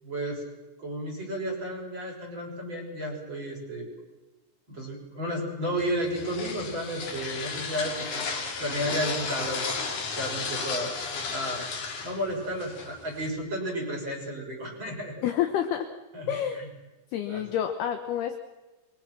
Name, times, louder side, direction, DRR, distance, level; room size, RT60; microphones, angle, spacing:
voice 1, 0.0-0.4 0.8-3.9 4.7-8.3 8.6-9.7 10.1-10.9 11.3-11.7 12.0-15.2 16.1-16.7 17.3-17.4, equal, 25° right, 0 dB, 6.8 m, -32 dB
sound 1, 5.8-13.3, left 4 dB, 45° left, 3.8 m, -34 dB
voice 2, 15.2-15.9 16.3-16.6 17.1-18.4, left 10 dB, 70° left, 6 dB, 2.6 m, -28 dB
28.5 x 24.0 x 6.1 m, 1.1 s
omnidirectional pair, 5.6 m